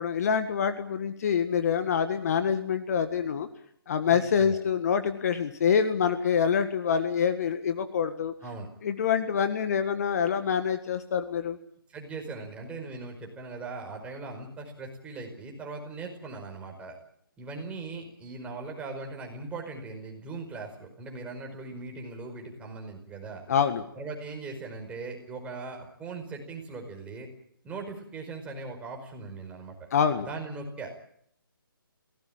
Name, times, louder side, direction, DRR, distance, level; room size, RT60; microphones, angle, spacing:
voice 1, 0.0-3.5 3.9-8.3 8.8-11.6 23.5-23.9 29.9-30.3, left 7 dB, 45° left, 9 dB, 1.7 m, -26 dB
voice 2, 4.1-4.6 8.4-8.7 11.9-17.0 17.4-23.4 23.9-27.3 27.6-29.9 30.2-30.9, right 3 dB, 10° right, 2 dB, 5.0 m, -39 dB
23.5 x 18.0 x 8.9 m, 0.68 s
figure-of-eight pair, 145°, 12 cm